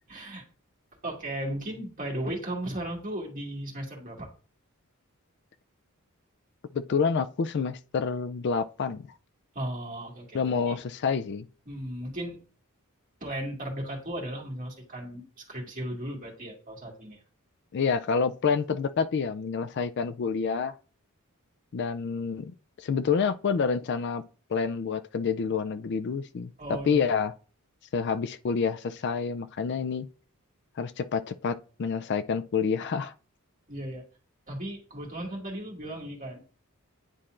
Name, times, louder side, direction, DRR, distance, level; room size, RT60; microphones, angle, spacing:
voice 1, 0.1-0.4 1.0-4.3 9.5-10.8 11.7-12.4 13.2-17.2 26.6-27.0 33.7-34.0 34.5-36.4, right 1 dB, 35° right, 2.1 m, -36 dB
voice 2, 6.7-9.1 10.3-11.5 17.7-20.8 21.7-24.2 24.5-27.3 27.9-30.1 30.8-33.1, left 5 dB, 50° left, 0.4 m, -28 dB
9.9 x 4.2 x 2.5 m
head